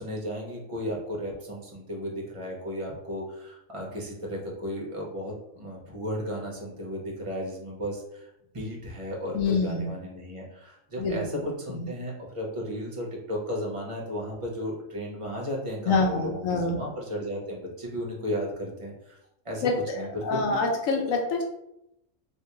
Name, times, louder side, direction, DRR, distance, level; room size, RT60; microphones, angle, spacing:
voice 1, 0.0-8.3 8.5-19.2 19.4-19.7 20.0-20.6, equal, 30° right, -2 dB, 0.7 m, -34 dB
voice 2, 9.3-9.9 11.0-11.4 11.7-11.9 15.9-16.8 19.6-21.4, left 3 dB, 75° left, 2 dB, 1.0 m, -26 dB
3.4 x 2.7 x 2.9 m, 0.83 s
omnidirectional pair, 1.4 m